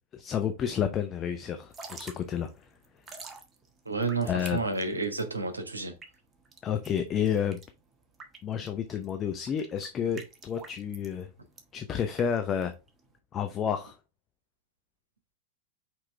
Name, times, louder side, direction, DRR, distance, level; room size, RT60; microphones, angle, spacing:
voice 1, 0.1-2.5 4.3-4.6 6.6-7.6 8.4-11.3 11.7-12.7 13.3-14.0, left 8 dB, 25° left, 0.7 m, -30 dB
Drip / Trickle dribble, 1.6-13.2, right 4 dB, 20° right, 1.4 m, -49 dB
voice 2, 3.8-5.9, right 3 dB, 80° right, 1.3 m, -30 dB
5.8 x 4.9 x 3.4 m
figure-of-eight pair, 90°, 0 cm